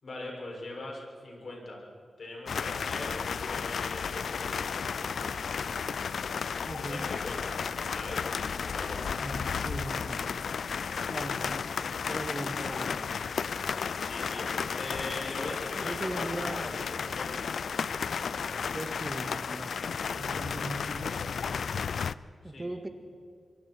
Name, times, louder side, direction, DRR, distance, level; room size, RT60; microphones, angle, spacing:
voice 1, 0.0-1.9 2.2-4.8 6.9-7.6 7.9-9.0 14.0-17.3 22.4-22.7, left 2 dB, 60° left, -1 dB, 7.1 m, -41 dB
sound 1, 2.5-22.1, left 6 dB, 80° left, 0.5 m, -33 dB
voice 2, 6.7-7.0 9.2-10.2 11.1-11.6 12.1-13.1 15.8-16.8 18.7-19.7 20.2-21.2 22.4-22.9, right 1 dB, 20° right, 6 dB, 2.1 m, -38 dB
24.5 x 24.0 x 4.7 m, 2.3 s
wide cardioid pair, 80°, 0 cm